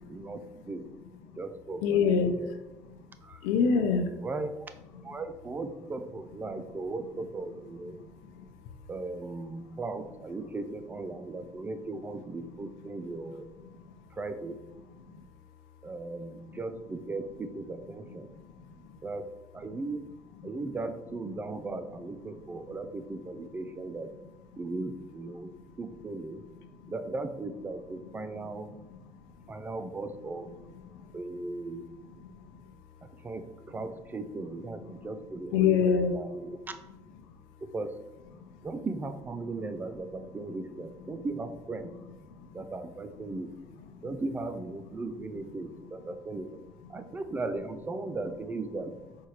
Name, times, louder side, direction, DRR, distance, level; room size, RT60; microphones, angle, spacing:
voice 1, 0.1-0.9 1.4-2.5 3.2-3.5 4.2-4.7 5.0-8.0 8.9-13.5 14.1-14.6 15.8-18.3 19.0-20.1 20.4-24.1 24.6-25.5 25.8-26.5 26.9-28.9 29.5-30.5 31.1-31.9 33.0-36.8 37.6-38.1 38.6-42.0 42.5-43.5 44.0-46.5 46.9-48.9, right 3 dB, 25° right, 9 dB, 0.4 m, -37 dB
voice 2, 1.8-2.3 2.9-3.1 3.4-4.1 8.0-8.5 13.8-13.9 15.1-15.2 18.3-18.9 26.8-26.9 29.2-29.3 30.9-31.1 32.2-32.6 35.5-36.2 38.4-38.5 42.3-42.5 43.9-44.1, left 6 dB, 85° left, 7 dB, 0.4 m, -28 dB
4.4 x 2.4 x 2.9 m, 1.0 s
supercardioid pair, 70°, 7 cm